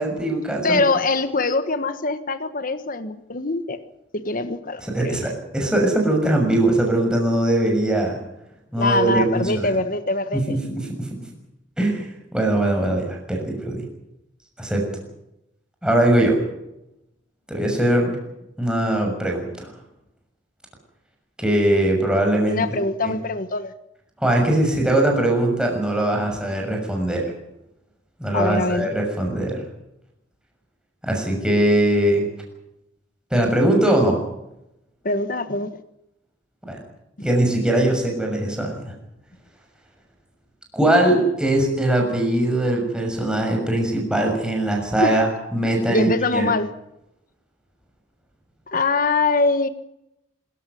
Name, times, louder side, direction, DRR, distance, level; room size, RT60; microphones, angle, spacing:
voice 1, 0.0-0.8 4.8-8.2 8.7-9.7 10.3-11.2 11.8-13.8 14.6-14.8 15.8-16.4 17.5-18.2 18.6-19.7 21.4-22.6 23.0-23.1 24.2-27.2 28.2-29.6 31.0-32.3 33.3-34.2 36.7-36.8 37.2-38.8 40.7-46.5, right 1 dB, 5° right, 1 dB, 6.6 m, -21 dB
voice 2, 0.6-3.8 4.1-5.2 8.8-10.6 22.5-23.7 28.3-28.9 35.0-35.8 45.0-45.2 45.7-46.7 48.7-49.7, left 3 dB, 45° left, 10 dB, 1.4 m, -23 dB
26.0 x 14.5 x 9.4 m, 0.86 s
head